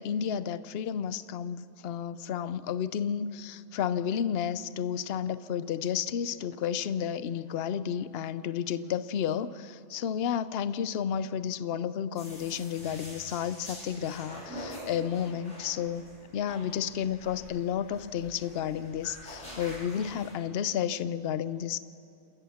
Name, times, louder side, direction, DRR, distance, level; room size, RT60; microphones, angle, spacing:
voice 1, 0.0-16.1 16.3-21.8, left 8 dB, 60° left, 14 dB, 0.8 m, -32 dB
sound 1, 12.2-20.3, equal, 90° left, 7.5 m, -46 dB
28.0 x 14.0 x 7.2 m, 2.9 s
omnidirectional pair, 1.3 m